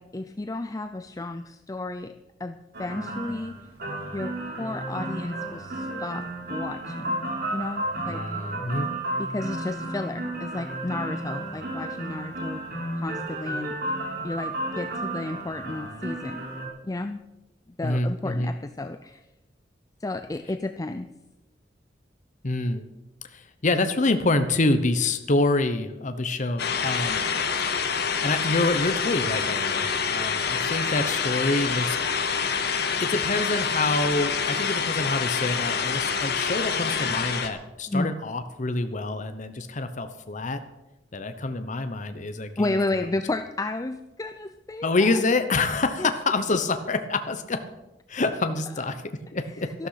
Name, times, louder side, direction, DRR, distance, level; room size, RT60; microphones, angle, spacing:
voice 1, 0.0-2.1 2.4-3.6 4.1-7.2 7.5-8.2 9.2-12.6 13.0-13.8 14.2-16.4 16.8-17.2 17.8-19.2 20.0-21.1 37.9-38.1 42.6-45.2 46.0-46.1 49.4-49.9, left 2 dB, 20° left, 8 dB, 0.5 m, -32 dB
sound 1, 2.7-16.7, right 1 dB, 60° right, 3.9 m, -33 dB
voice 2, 8.0-8.9 17.8-18.5 22.4-22.9 23.3-27.2 28.2-32.5 33.0-40.6 41.1-43.1 44.8-47.6 48.1-49.9, left 2 dB, 45° left, 9 dB, 0.9 m, -27 dB
sound 2, 26.6-37.5, left 6 dB, 60° left, 1.4 m, -27 dB
13.0 x 12.5 x 5.8 m, 0.98 s
head